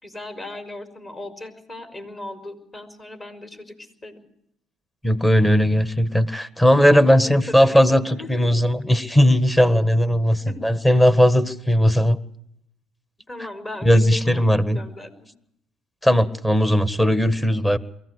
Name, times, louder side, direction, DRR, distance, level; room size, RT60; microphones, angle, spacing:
voice 1, 0.0-4.3 6.9-8.7 10.3-10.6 13.3-15.3 16.1-16.3, left 2 dB, 30° left, 7 dB, 5.1 m, -37 dB
voice 2, 5.0-12.2 13.8-14.8 16.0-17.8, equal, 10° left, 12 dB, 1.6 m, -18 dB
23.0 x 15.5 x 8.1 m, 0.75 s
supercardioid pair, 75°, 0 cm